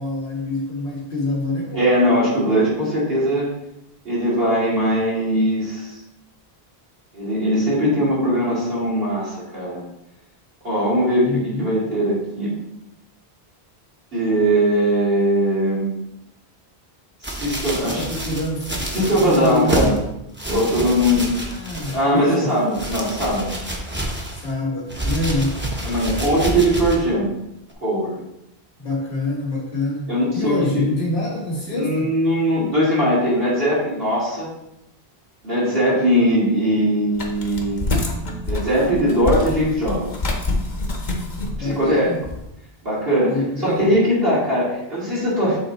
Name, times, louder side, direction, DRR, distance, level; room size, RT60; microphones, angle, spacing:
voice 1, 0.0-1.9 11.2-11.7 17.9-20.0 20.7-22.5 24.3-25.6 28.8-32.2 41.6-42.2 43.3-43.9, left 2 dB, 80° left, -5 dB, 2.0 m, -26 dB
voice 2, 1.7-3.5 4.0-5.9 7.1-9.8 10.6-12.5 14.1-16.0 17.2-18.0 18.9-19.9 20.5-21.3 21.9-23.5 25.8-27.3 27.8-28.1 30.1-30.8 31.7-34.5 35.4-37.9 38.4-40.2 41.6-42.1 42.8-45.6, equal, 65° right, -8 dB, 3.0 m, -20 dB
sound 1, 17.2-20.0 20.3-22.2 22.5-24.5 24.9-27.1 27.7-27.8, right 1 dB, 10° right, 0.9 m, -28 dB
sound 2, 37.2-42.4, left 2 dB, 45° left, 1.1 m, -26 dB
7.6 x 3.8 x 4.2 m, 0.85 s
omnidirectional pair, 1.1 m